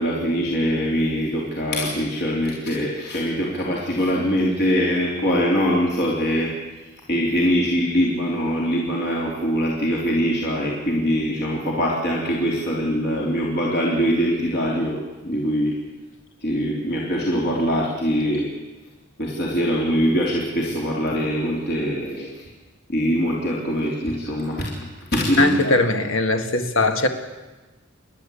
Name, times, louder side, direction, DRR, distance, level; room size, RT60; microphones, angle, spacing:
voice 1, 0.0-6.5 7.1-15.0 15.2-15.7 16.4-18.5 19.2-22.4 22.9-24.7 25.1-25.7, equal, 50° left, -3 dB, 3.4 m, -22 dB
voice 2, 25.4-27.1, left 2 dB, 70° left, 7 dB, 1.9 m, -20 dB
29.0 x 11.5 x 8.5 m, 1.2 s
head